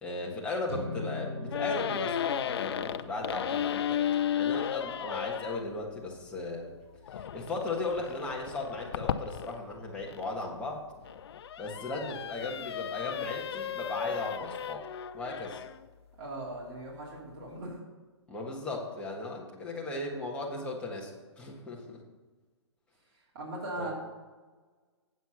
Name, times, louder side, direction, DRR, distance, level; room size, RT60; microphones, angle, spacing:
voice 1, 0.0-4.0 4.3-6.7 7.1-10.8 11.6-14.8 15.1-15.6 18.3-22.0 23.8-23.9, left 2 dB, 5° left, -3 dB, 1.5 m, -36 dB
sound 1, 0.7-7.1, left 2 dB, 70° right, 2.3 m, -44 dB
sound 2, 1.5-5.6 7.1-10.2 10.9-15.8, left 9 dB, 60° left, 0.5 m, -34 dB
voice 2, 16.2-17.8 23.3-23.9, right 2 dB, 45° right, -4 dB, 3.1 m, -39 dB
8.1 x 7.0 x 5.8 m, 1.3 s
hypercardioid pair, 150°, 15 cm